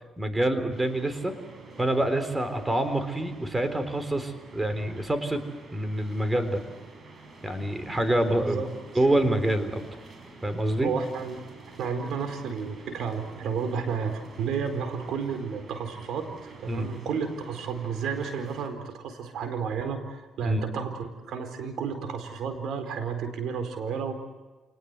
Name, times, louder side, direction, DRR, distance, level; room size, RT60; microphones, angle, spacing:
voice 1, 0.2-1.3 1.8-5.4 5.7-6.6 7.4-8.6 9.0-9.8 10.4-10.9 16.7-16.9 20.4-20.6, right 1 dB, 15° right, 10 dB, 3.9 m, -26 dB
sound 1, 0.7-18.7, right 4 dB, 45° right, 5.9 m, -48 dB
voice 2, 10.8-11.4 11.8-24.1, right 6 dB, 75° right, 8 dB, 4.3 m, -32 dB
28.0 x 20.0 x 8.2 m, 1.3 s
cardioid pair, 90°, 0 cm